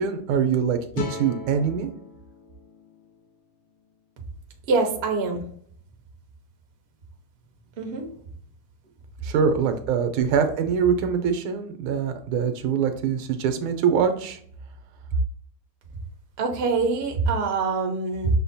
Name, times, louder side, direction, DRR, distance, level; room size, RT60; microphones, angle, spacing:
voice 1, 0.0-1.9 9.2-14.4, right 7 dB, 85° right, 7 dB, 1.5 m, -24 dB
sound 1, 0.9-4.1, left 4 dB, 90° left, 1.7 m, -38 dB
voice 2, 4.7-5.4 7.8-8.1 16.4-18.3, right 4 dB, 70° right, 2 dB, 0.5 m, -24 dB
6.4 x 2.1 x 2.7 m, 0.62 s
omnidirectional pair, 2.3 m